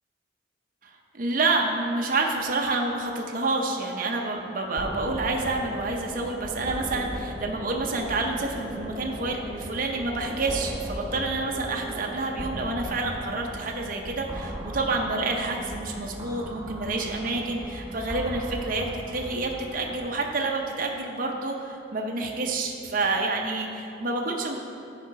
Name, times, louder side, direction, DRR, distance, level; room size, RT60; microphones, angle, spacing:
voice 1, 0.8-24.6, right 3 dB, 50° right, 1 dB, 0.7 m, -28 dB
sound 1, 4.8-20.0, equal, 15° right, 1.0 m, -38 dB
10.5 x 5.0 x 4.7 m, 2.6 s
head